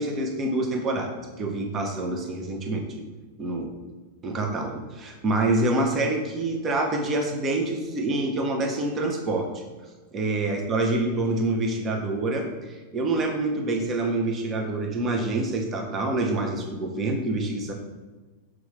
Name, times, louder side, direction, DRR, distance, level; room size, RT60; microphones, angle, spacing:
voice 1, 0.0-3.0 3.4-3.7 4.2-9.5 10.1-17.7, right 2 dB, 30° right, 3 dB, 0.7 m, -26 dB
5.9 x 2.4 x 3.2 m, 1.3 s
hypercardioid pair, 100°, 0 cm